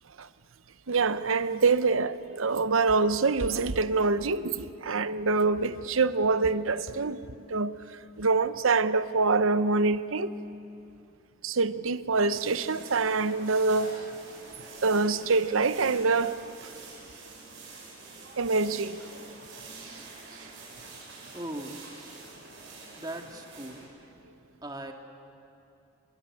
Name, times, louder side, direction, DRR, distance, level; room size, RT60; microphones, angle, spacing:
voice 1, 0.9-7.2 7.5-7.8 8.2-10.3 11.4-14.0 14.8-16.4 18.4-19.0 19.9-20.0, right 4 dB, 90° right, 0.9 m, -25 dB
sound 1, 12.3-23.8, right 3 dB, 60° right, 7.1 m, -46 dB
voice 2, 21.3-21.8 22.9-23.9 24.6-24.9, right 1 dB, 20° right, 2.0 m, -38 dB
25.5 x 23.0 x 8.5 m
head